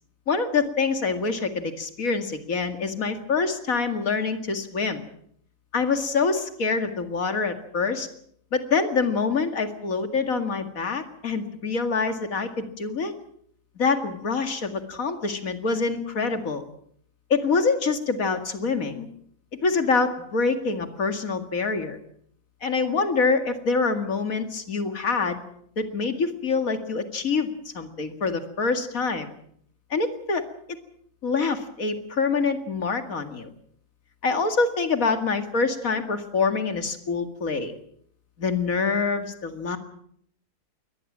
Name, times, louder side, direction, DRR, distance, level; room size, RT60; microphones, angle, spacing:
voice 1, 0.3-5.0 5.7-8.1 8.5-13.1 13.8-16.6 17.3-19.1 19.6-22.0 22.6-25.4 25.8-27.5 27.7-29.3 29.9-30.4 31.2-33.5 34.2-37.7 38.4-39.8, left 4 dB, 65° left, 8 dB, 2.5 m, -25 dB
22.5 x 19.0 x 7.4 m, 0.66 s
omnidirectional pair, 1.6 m